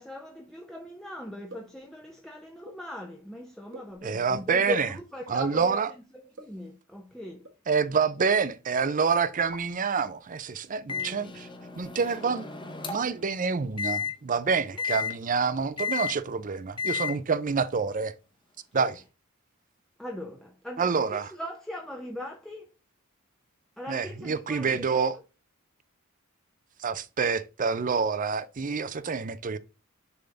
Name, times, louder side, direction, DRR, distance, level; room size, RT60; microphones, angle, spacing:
voice 1, 0.0-5.8 6.1-7.5 14.7-14.8 18.8-18.9 20.0-22.7 23.8-25.0, left 1 dB, 5° left, 0.6 m, -39 dB
sound 1, 1.5-1.8 2.6-2.9 3.7-4.3 4.7-4.8 5.2-5.4 6.4-6.7 7.4-7.6 8.2-8.7 9.0-9.1 9.4-9.9, right 2 dB, 60° right, 1.3 m, -48 dB
voice 2, 4.0-4.9 5.3-5.9 7.7-11.5 11.8-12.5 12.9-18.1 18.7-19.0 20.8-21.3 23.9-25.2 26.8-29.6, right 5 dB, 40° right, 0.5 m, -27 dB
Microwave oven, 10.9-13.2 13.8-14.1 14.8-15.1 15.8-16.1 16.8-17.1, left 6 dB, 20° left, 1.0 m, -32 dB
6.9 x 3.6 x 3.9 m
head